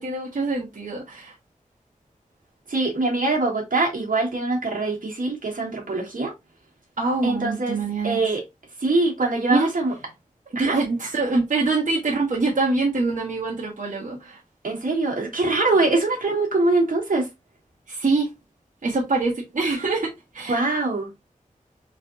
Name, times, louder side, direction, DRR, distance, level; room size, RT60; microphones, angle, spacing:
voice 1, 0.0-1.3 7.0-8.2 9.5-9.7 10.5-14.4 17.9-18.3 18.8-20.6, right 3 dB, 70° right, 1.4 m, -24 dB
voice 2, 2.7-6.3 7.2-7.8 8.0-8.4 8.8-9.9 10.5-10.7 14.6-17.3 20.5-21.1, right 2 dB, 85° right, 1.7 m, -23 dB
4.0 x 3.4 x 2.7 m
wide cardioid pair, 70°, 14 cm